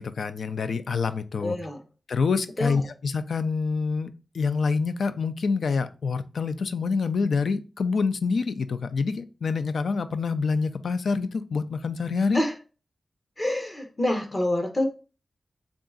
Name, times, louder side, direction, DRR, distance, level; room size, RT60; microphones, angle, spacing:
voice 1, 0.0-1.6 2.1-12.4, left 4 dB, 90° left, 0.3 m, -26 dB
voice 2, 1.4-1.8 2.6-2.8 12.3-12.5 13.4-14.9, left 1 dB, 30° left, 0.8 m, -27 dB
3.6 x 2.4 x 3.8 m
wide cardioid pair, 100°, 0 cm